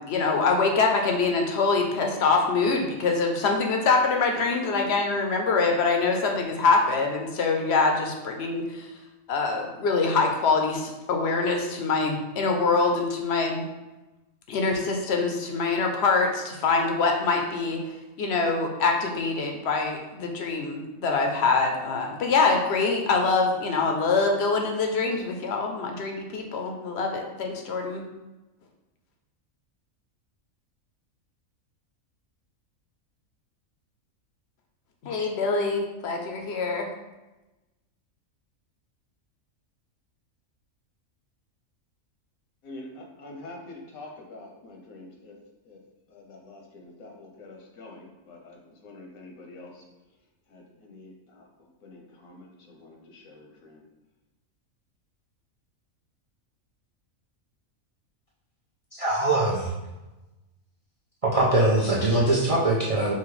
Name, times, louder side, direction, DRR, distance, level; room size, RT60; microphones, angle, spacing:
voice 1, 0.0-8.9 9.3-13.7 14.5-17.8 18.2-28.0 35.0-36.9, left 4 dB, 60° left, 2 dB, 0.7 m, -24 dB
voice 2, 42.6-45.3 45.6-45.8 46.1-49.8 50.5-53.8, left 2 dB, 85° left, 0 dB, 1.3 m, -46 dB
voice 3, 58.9-59.7 61.2-63.1, right 2 dB, 45° right, -5 dB, 0.4 m, -22 dB
5.6 x 2.2 x 3.1 m, 1.1 s
omnidirectional pair, 1.5 m